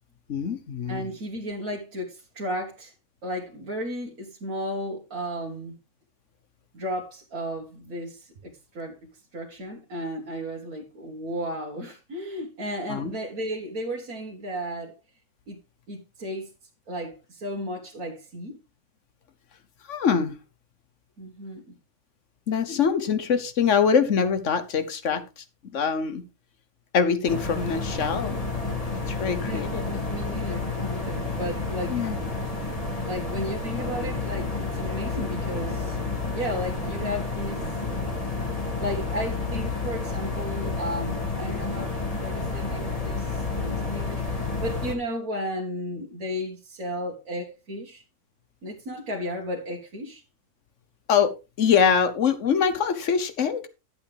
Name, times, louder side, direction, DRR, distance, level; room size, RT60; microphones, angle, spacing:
voice 1, 0.3-1.1 12.9-13.1 19.9-20.4 22.5-26.2 26.9-28.4 28.9-29.8 31.9-32.2 51.1-51.3 51.6-53.7, left 6 dB, 55° left, 1.3 m, -24 dB
voice 2, 0.9-2.9 3.2-5.8 6.7-9.0 9.3-15.0 15.5-15.6 15.9-16.5 16.9-18.6 21.2-21.8 29.4-32.0 33.0-36.0 36.3-38.1 38.8-48.0 48.6-50.2, equal, 65° right, 1.9 m, -34 dB
sound 1, 27.3-44.9, left 3 dB, 25° left, 1.9 m, -30 dB
11.5 x 8.0 x 3.4 m
omnidirectional pair, 1.5 m